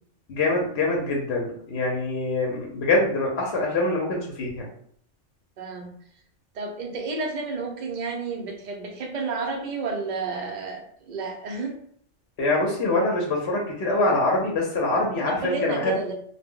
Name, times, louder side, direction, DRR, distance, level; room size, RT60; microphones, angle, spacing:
voice 1, 0.3-4.7 12.4-15.9, left 2 dB, 65° left, -1 dB, 0.8 m, -24 dB
voice 2, 5.6-5.9 6.5-11.7 15.2-16.2, right 4 dB, 55° right, 3 dB, 0.5 m, -31 dB
2.2 x 2.0 x 3.6 m, 0.63 s
omnidirectional pair, 1.3 m